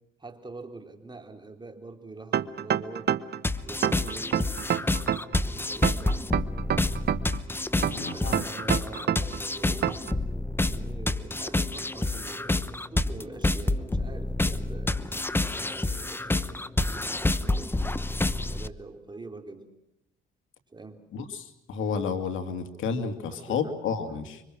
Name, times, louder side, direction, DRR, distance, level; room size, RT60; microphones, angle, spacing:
voice 1, 0.2-3.2 3.7-6.2 7.7-10.0 10.6-18.1 18.5-19.7 20.7-21.0 23.3-23.6 24.1-24.2, right 3 dB, 20° right, 5 dB, 3.7 m, -45 dB
sound 1, 2.3-3.4 3.8-5.4 5.8-7.4 7.8-9.4 9.8-10.1, right 9 dB, 55° right, 1.0 m, -27 dB
sound 2, 3.4-18.7, left 2 dB, 10° left, 0.9 m, -28 dB
voice 2, 7.9-8.4 21.1-24.4, left 5 dB, 80° left, 7 dB, 2.5 m, -31 dB
25.5 x 25.0 x 6.2 m, 0.86 s
cardioid pair, 90°, 20 cm